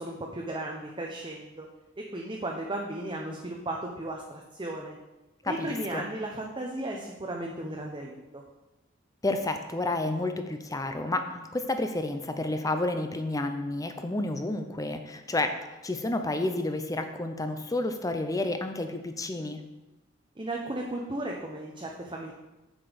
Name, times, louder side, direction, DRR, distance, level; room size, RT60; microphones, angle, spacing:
voice 1, 0.0-1.7 2.0-5.0 5.5-8.4 20.4-22.3, right 1 dB, 25° right, 0 dB, 0.8 m, -35 dB
voice 2, 5.4-6.0 9.2-15.6 15.8-19.6, left 2 dB, 15° left, 7 dB, 0.6 m, -30 dB
7.3 x 6.7 x 5.1 m, 1.0 s
head